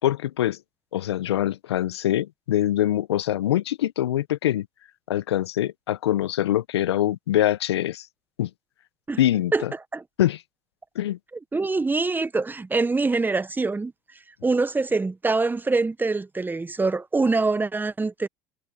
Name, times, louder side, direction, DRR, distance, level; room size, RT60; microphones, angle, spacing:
voice 1, 0.0-0.6 0.9-4.7 5.1-8.1 8.4-8.5 9.2-9.7 10.2-10.4 10.9-11.2, left 12 dB, 80° left, 0.8 m, -24 dB
voice 2, 11.5-13.9 14.4-18.3, right 3 dB, 15° right, 1.3 m, -24 dB
hypercardioid pair, 80°, 14 cm